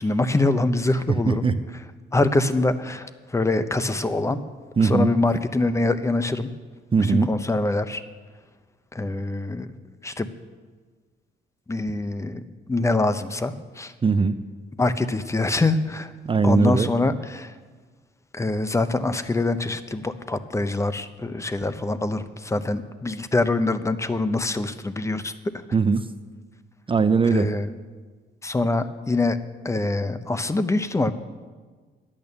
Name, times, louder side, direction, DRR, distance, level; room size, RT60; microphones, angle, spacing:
voice 1, 0.0-1.5 2.1-4.4 4.8-6.5 7.0-8.0 8.9-9.7 10.0-10.3 11.7-13.9 14.8-16.1 16.4-17.5 18.3-25.6 27.3-27.7 28.4-29.4 29.6-31.1, left 2 dB, 15° left, 12 dB, 0.7 m, -24 dB
voice 2, 4.8-5.1 6.9-7.3 14.0-14.3 16.3-16.9 25.7-26.0 26.9-27.5, right 4 dB, 25° right, 11 dB, 0.6 m, -19 dB
10.5 x 8.7 x 6.8 m, 1.4 s
cardioid pair, 90°, 20 cm